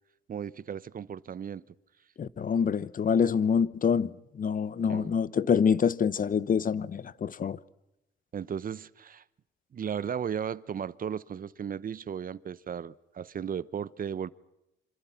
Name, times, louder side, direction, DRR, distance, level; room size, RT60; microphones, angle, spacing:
voice 1, 0.3-1.6 4.9-5.1 8.3-9.2 9.7-14.3, right 8 dB, 45° right, 0.9 m, -35 dB
voice 2, 2.2-7.6, left 6 dB, 45° left, 1.0 m, -26 dB
27.0 x 26.0 x 5.9 m
cardioid pair, 90°, 20 cm